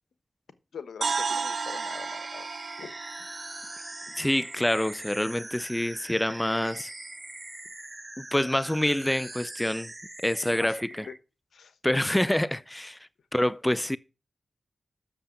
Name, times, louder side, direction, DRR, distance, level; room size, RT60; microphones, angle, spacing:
voice 1, 0.7-2.5 2.8-2.9 4.1-4.2 10.4-11.1 11.5-11.8, left 6 dB, 80° left, 1.0 m, -43 dB
sound 1, 1.0-5.0, right 5 dB, 65° right, 0.5 m, -34 dB
sound 2, 1.5-11.2, right 2 dB, 25° right, 0.7 m, -42 dB
voice 2, 4.2-6.9 8.2-9.9 10.2-10.8 11.8-13.0 13.3-14.0, left 1 dB, 10° left, 0.5 m, -26 dB
7.5 x 6.9 x 7.2 m
cardioid pair, 45°, 0 cm